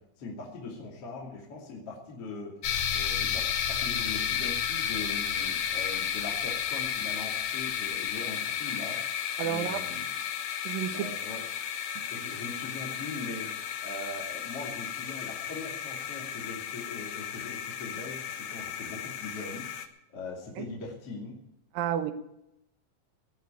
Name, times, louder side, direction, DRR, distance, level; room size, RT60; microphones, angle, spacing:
voice 1, 0.0-2.6 2.9-10.1 10.9-11.4 12.1-19.9 20.1-21.4, left 3 dB, 40° left, -4 dB, 3.7 m, -41 dB
sound 1, 2.6-19.9, left 8 dB, 70° left, 1.7 m, -33 dB
voice 2, 9.4-9.8 10.6-11.1 12.0-12.1 20.6-20.7 21.7-22.1, right 10 dB, 75° right, 7 dB, 2.8 m, -31 dB
19.0 x 6.5 x 9.1 m, 0.84 s
omnidirectional pair, 4.1 m